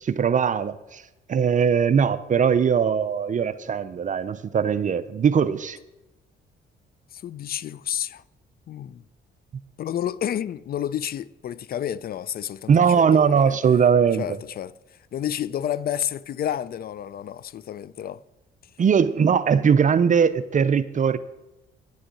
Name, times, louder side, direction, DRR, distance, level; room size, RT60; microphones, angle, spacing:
voice 1, 0.0-1.0 1.3-5.8 12.7-14.2 18.8-21.2, right 7 dB, 40° right, 0.5 m, -20 dB
voice 2, 7.1-8.2 8.7-9.0 9.8-13.6 14.2-14.8 15.1-18.2, left 10 dB, 50° left, 0.4 m, -30 dB
9.8 x 6.3 x 8.3 m
cardioid pair, 90°, 20 cm